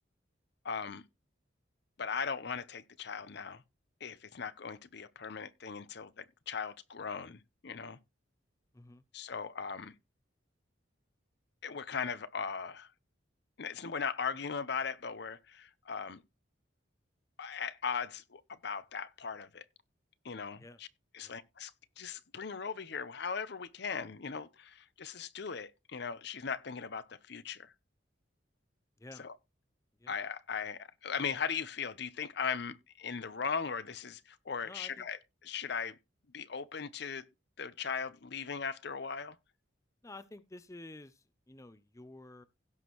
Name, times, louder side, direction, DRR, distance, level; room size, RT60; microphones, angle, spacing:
voice 1, 0.6-1.0 2.0-3.6 4.0-8.0 9.1-9.9 11.6-12.9 13.6-16.2 17.4-19.6 20.2-20.9 21.1-27.7 29.2-29.4 30.1-36.0 36.3-37.3 37.6-39.4, left 6 dB, 60° left, 0.7 m, -38 dB
voice 2, 34.6-35.1 40.0-42.4, left 2 dB, 15° left, 0.5 m, -51 dB
16.5 x 6.2 x 3.1 m
head